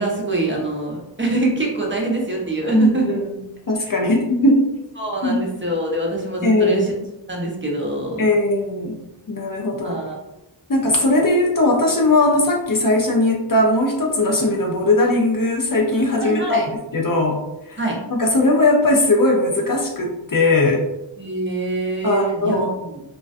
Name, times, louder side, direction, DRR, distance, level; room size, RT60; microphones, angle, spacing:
voice 1, 0.0-3.2 3.8-4.0 5.0-6.9 7.3-8.2 9.8-10.1 16.2-16.7 17.8-18.0 21.2-23.0, right 2 dB, 25° right, -2 dB, 0.7 m, -24 dB
voice 2, 2.7-3.3 3.7-4.7 5.2-5.5 6.4-6.9 8.2-9.0 9.3-10.0 10.7-16.6 16.9-17.4 17.7-17.8 18.1-20.8 22.0-22.7, left 2 dB, 45° left, 0 dB, 0.5 m, -18 dB
2.4 x 2.1 x 2.4 m, 0.92 s
wide cardioid pair, 40°, 46 cm